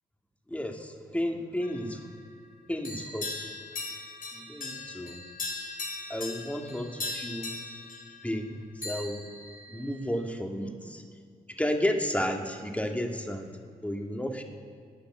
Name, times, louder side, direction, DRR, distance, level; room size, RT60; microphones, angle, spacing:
voice 1, 0.5-2.0 2.7-3.4 4.3-5.2 6.1-7.5 8.2-9.2 9.7-11.0 11.6-13.5 13.8-14.4, equal, 10° left, 3 dB, 2.1 m, -32 dB
sound 1, 1.6-2.5 2.8-8.6 8.8-10.3, left 3 dB, 55° left, 4.1 m, -39 dB
10.5 x 9.7 x 7.6 m, 2.2 s
hypercardioid pair, 40°, 17 cm